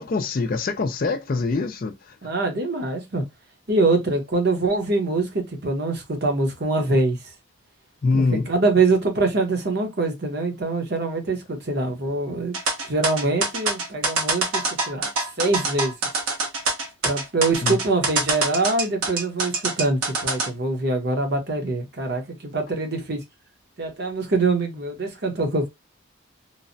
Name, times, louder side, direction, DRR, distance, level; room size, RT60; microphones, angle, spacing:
voice 1, 0.0-2.2 8.0-8.5 17.6-17.8, left 3 dB, 40° left, 0.3 m, -24 dB
voice 2, 2.2-3.2 3.7-7.2 8.1-12.5 12.9-15.1 15.4-15.9 17.0-23.2 23.8-25.7, right 3 dB, 50° right, 0.8 m, -24 dB
sound 1, 12.5-20.5, right 3 dB, 80° right, 0.9 m, -24 dB
3.1 x 2.0 x 2.6 m
head